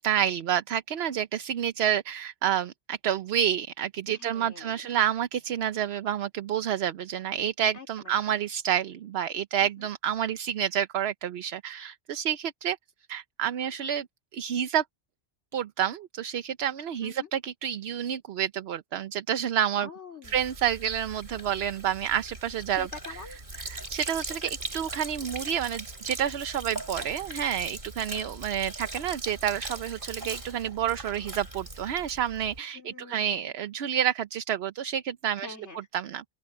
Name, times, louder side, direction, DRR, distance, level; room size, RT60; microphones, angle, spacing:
voice 1, 0.0-12.8 13.1-14.1 14.3-14.8 15.5-19.9 20.3-22.9 23.6-35.6 35.9-36.2, right 9 dB, 65° right, 0.9 m, -29 dB
voice 2, 4.1-4.8 7.7-8.3 9.6-9.9 17.0-17.3 19.8-20.4 22.7-23.4 32.7-33.5 35.4-35.9, left 4 dB, 85° left, 3.2 m, -45 dB
Sink (filling or washing), 20.2-32.6, right 2 dB, 45° right, 3.9 m, -40 dB
open air
omnidirectional pair, 1.2 m